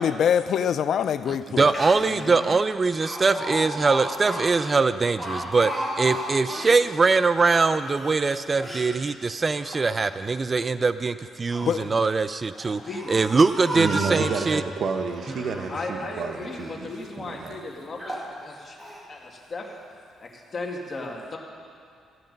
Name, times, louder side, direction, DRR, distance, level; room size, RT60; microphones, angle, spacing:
voice 1, 0.0-1.7 2.0-2.3 11.6-12.0 12.7-12.8, left 8 dB, 65° left, 0.4 m, -25 dB
voice 2, 1.3-5.7 6.0-12.8 13.1-14.6, right 4 dB, 30° right, 0.4 m, -22 dB
Speech, 1.4-1.5 1.7-2.2 3.0-6.8 7.3-8.9 9.5-10.3 11.2-11.8 12.5-14.5 15.1-15.9 16.3-16.8 17.4-17.5 18.0-18.3 18.8-19.0, equal, 5° right, 2.2 m, -34 dB
voice 3, 12.8-13.1 15.7-18.8 19.1-19.7 20.2-21.4, left 2 dB, 35° left, 2.2 m, -36 dB
voice 4, 13.7-17.6, right 5 dB, 60° right, 1.0 m, -30 dB
15.5 x 8.7 x 5.3 m
cardioid pair, 90°, 0 cm